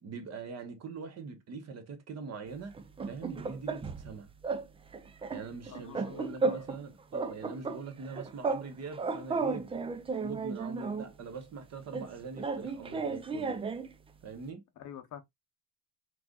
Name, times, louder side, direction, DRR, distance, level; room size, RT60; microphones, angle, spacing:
voice 1, 0.0-2.8 3.0-4.3 5.3-9.7 10.1-13.6 14.2-14.6, right 4 dB, 40° right, 1.3 m, -43 dB
sound 1, 2.7-4.1 4.4-4.7 4.9-6.8 7.1-8.7 8.9-11.1 11.9-13.9, right 4 dB, 15° right, 0.3 m, -34 dB
voice 2, 5.7-6.7 14.8-15.2, left 9 dB, 45° left, 0.8 m, -47 dB
4.6 x 3.9 x 2.3 m
cardioid pair, 135°, 41 cm